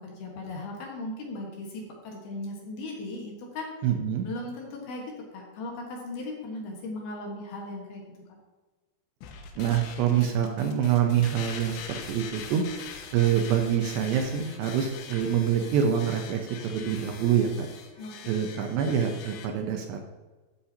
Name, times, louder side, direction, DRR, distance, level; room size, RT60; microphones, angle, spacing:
voice 1, 0.0-3.7 4.2-5.0 5.3-8.0 18.0-18.5, left 2 dB, 65° left, -1 dB, 3.0 m, -37 dB
voice 2, 3.8-4.3 9.6-12.6 13.1-17.7 18.3-20.0, right 8 dB, 75° right, 4 dB, 2.7 m, -26 dB
sound 1, 9.2-19.5, left 7 dB, 85° left, 3.3 m, -43 dB
13.0 x 8.1 x 2.8 m, 1.3 s
omnidirectional pair, 5.4 m